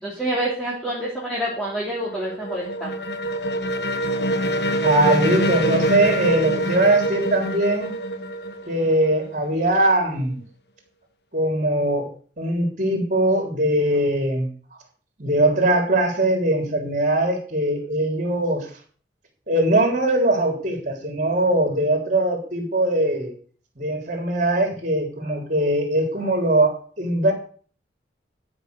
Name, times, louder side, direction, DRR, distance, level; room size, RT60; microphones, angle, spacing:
voice 1, 0.0-2.9, right 1 dB, 5° left, -7 dB, 2.9 m, -27 dB
sound 1, 1.7-9.5, right 1 dB, 65° left, 1.2 m, -25 dB
voice 2, 4.8-7.9 8.7-10.4 11.3-12.1 12.4-14.5 15.2-18.7 19.5-23.3 23.8-27.3, right 1 dB, 45° right, 3 dB, 3.6 m, -21 dB
12.5 x 6.1 x 6.6 m, 0.43 s
head